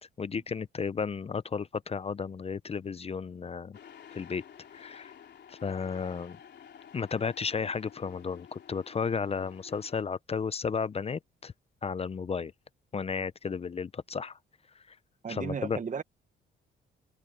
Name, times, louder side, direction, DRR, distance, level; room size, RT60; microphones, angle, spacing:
voice 1, 0.2-3.8 4.1-4.4 4.7-5.1 5.5-6.4 6.9-11.5 11.8-12.5 12.9-14.4 14.9-15.0 15.3-15.8, left 5 dB, 30° left, 0.6 m, -33 dB
sound 1, 3.7-10.0, left 8 dB, 60° left, 3.4 m, -52 dB
voice 2, 15.2-16.0, right 6 dB, 40° right, 1.3 m, -34 dB
cardioid pair, 90°, 20 cm